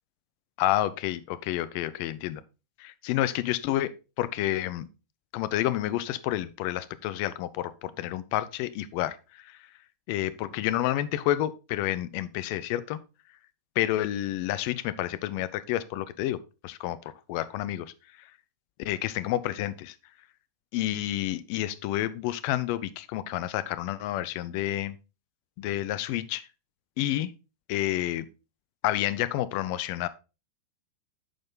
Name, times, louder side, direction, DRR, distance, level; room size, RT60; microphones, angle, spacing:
voice 1, 0.6-2.4 2.8-4.9 5.3-9.7 10.1-13.0 13.8-16.4 16.6-17.0 17.3-18.3 18.8-20.0 20.7-25.0 25.6-26.5 27.0-27.3 27.7-28.3 28.8-30.1, left 14 dB, 45° left, 15 dB, 0.6 m, -29 dB
8.7 x 5.4 x 3.7 m, 0.30 s
figure-of-eight pair, 90°, 0 cm